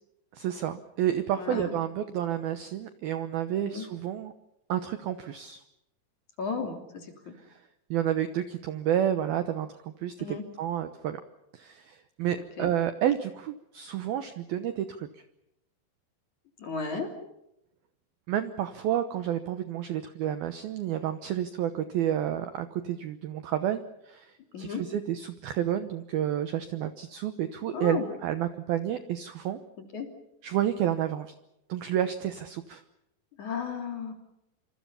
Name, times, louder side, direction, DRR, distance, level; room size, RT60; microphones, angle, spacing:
voice 1, 0.3-4.3 4.7-5.6 7.5-7.6 7.9-11.2 11.5-15.2 18.3-29.6 30.4-31.3 31.7-32.8, right 10 dB, 75° right, 9 dB, 2.3 m, -30 dB
voice 2, 1.4-1.7 3.6-3.8 6.4-7.3 10.2-10.4 12.6-12.7 16.6-17.1 24.5-24.8 27.7-28.1 29.9-30.1 33.4-34.1, left 5 dB, 40° left, 4 dB, 4.1 m, -34 dB
27.5 x 26.5 x 5.7 m, 0.84 s
omnidirectional pair, 5.6 m